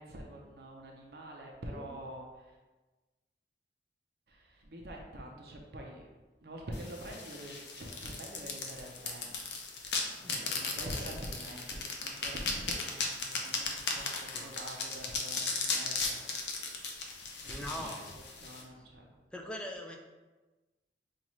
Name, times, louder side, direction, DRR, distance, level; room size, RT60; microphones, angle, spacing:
voice 1, 0.0-2.5 4.3-6.0 6.4-9.4 10.2-13.7 13.9-16.3 16.6-16.7 17.6-17.9 18.4-19.1, right 1 dB, 65° right, 0 dB, 0.6 m, -45 dB
sound 1, 6.7-18.6, left 4 dB, 75° left, 0.6 m, -37 dB
voice 2, 10.2-10.6 10.9-11.0 14.3-14.5 17.5-18.1 18.8-18.9 19.3-20.0, left 1 dB, 5° left, 0 dB, 0.4 m, -42 dB
5.5 x 2.4 x 3.0 m, 1.2 s
head